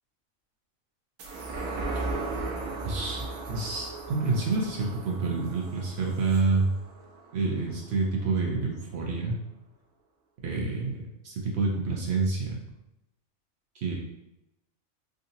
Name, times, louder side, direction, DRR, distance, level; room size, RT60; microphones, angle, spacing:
sound 1, 1.2-8.0 8.4-8.5, right 3 dB, 80° right, 1.1 m, -36 dB
voice 1, 2.8-6.7 7.3-9.4 10.4-12.6 13.7-13.9, right 3 dB, 60° right, -1 dB, 0.8 m, -28 dB
3.7 x 2.7 x 2.6 m, 0.89 s
omnidirectional pair, 1.4 m